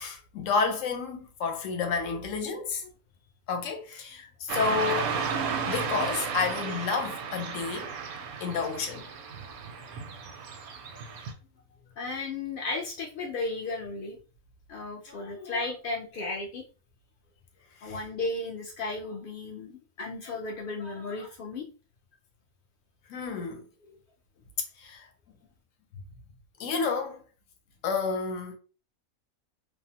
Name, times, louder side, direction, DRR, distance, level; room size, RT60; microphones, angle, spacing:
voice 1, 0.0-2.8 3.5-5.2 5.7-7.9 8.4-9.1 17.8-18.0 23.1-23.7 24.8-25.1 26.6-27.2 27.8-28.6, left 5 dB, 70° left, 0.9 m, -30 dB
Car passing by / Traffic noise roadway noise, 4.5-11.3, right 6 dB, 85° right, 1.0 m, -34 dB
voice 2, 10.7-11.0 12.0-14.2 14.7-16.6 17.8-21.7, left 3 dB, 90° left, 0.4 m, -35 dB
2.6 x 2.1 x 2.7 m
omnidirectional pair, 1.5 m